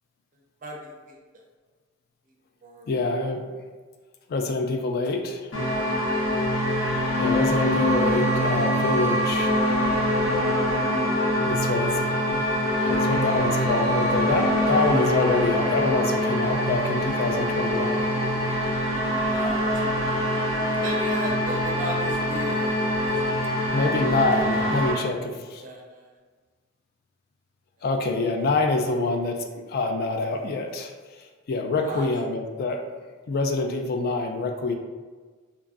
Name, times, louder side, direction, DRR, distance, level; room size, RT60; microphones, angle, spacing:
voice 1, 0.6-1.2 2.6-2.9 19.3-19.7 20.8-23.9 24.9-25.0 25.6-26.1 31.8-32.1, right 1 dB, 40° right, 0 dB, 0.4 m, -37 dB
voice 2, 2.9-3.4 4.3-5.5 7.2-9.6 11.4-12.0 12.3-12.5 12.8-18.1 23.7-25.6 27.8-30.9 31.2-32.8 33.3-34.7, left 3 dB, 50° left, 4 dB, 0.3 m, -26 dB
sound 1, 5.5-24.9, equal, 70° left, 1.1 m, -24 dB
2.9 x 2.5 x 2.4 m, 1.4 s
head